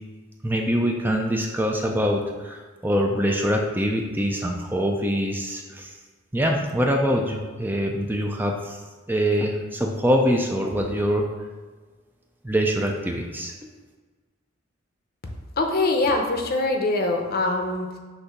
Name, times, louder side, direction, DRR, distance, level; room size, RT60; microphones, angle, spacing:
voice 1, 0.4-6.0 6.3-8.8 9.1-11.3 12.4-13.5, equal, 10° right, 1 dB, 0.4 m, -24 dB
voice 2, 15.6-18.0, left 2 dB, 45° left, 3 dB, 0.7 m, -23 dB
6.6 x 2.7 x 5.7 m, 1.4 s
head